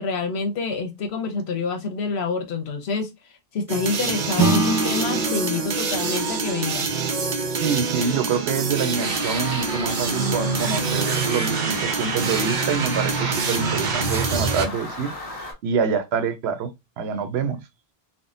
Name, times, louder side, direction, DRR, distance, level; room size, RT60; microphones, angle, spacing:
voice 1, 0.0-3.1 3.5-6.9, left 4 dB, 85° left, 1.0 m, -27 dB
sound 1, 3.7-14.7, right 4 dB, 55° right, 0.6 m, -25 dB
Acoustic guitar / Strum, 4.4-9.2, right 2 dB, 20° left, 0.7 m, -27 dB
voice 2, 7.5-15.1 15.6-17.6, right 6 dB, 85° right, 0.9 m, -26 dB
sound 2, 9.0-15.5, left 2 dB, 35° left, 1.2 m, -35 dB
3.5 x 2.1 x 2.5 m
omnidirectional pair, 1.0 m